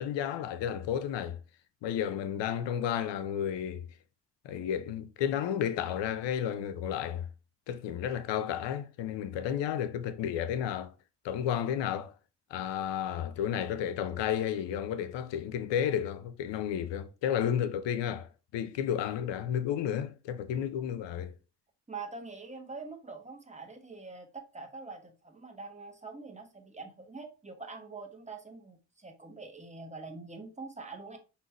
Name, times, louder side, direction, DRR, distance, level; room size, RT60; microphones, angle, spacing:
voice 1, 0.0-1.4 1.8-3.9 4.4-7.3 7.7-10.9 11.2-12.1 12.5-21.3, left 9 dB, 80° left, 0.6 m, -32 dB
voice 2, 21.9-31.2, right 4 dB, 15° right, 1.4 m, -44 dB
5.4 x 2.9 x 3.0 m
supercardioid pair, 45°, 43 cm